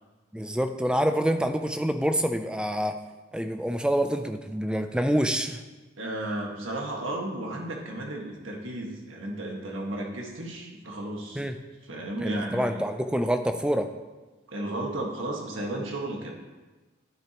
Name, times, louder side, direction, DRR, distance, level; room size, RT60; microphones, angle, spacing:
voice 1, 0.3-3.0 3.3-5.6 11.3-11.5 12.2-13.9, equal, 5° right, 8 dB, 0.4 m, -26 dB
voice 2, 6.0-11.5 11.9-12.8 14.5-16.3, right 1 dB, 85° right, 0 dB, 1.6 m, -34 dB
10.0 x 9.0 x 3.0 m, 1.2 s
head